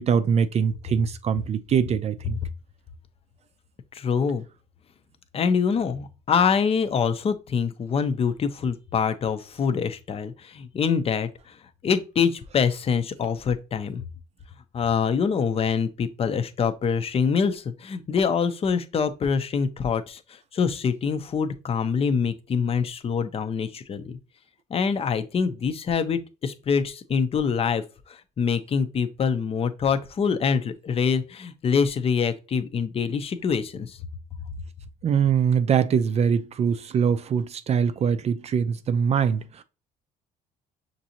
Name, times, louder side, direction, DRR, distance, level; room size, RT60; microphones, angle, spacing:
voice 1, 0.0-2.4 35.0-39.6, right 7 dB, 40° right, 0.4 m, -23 dB
voice 2, 3.9-4.4 5.3-11.6 11.8-14.0 14.7-24.2 24.7-34.0, left 6 dB, 35° left, 0.6 m, -25 dB
6.0 x 2.6 x 2.8 m
cardioid pair, 110°, 17 cm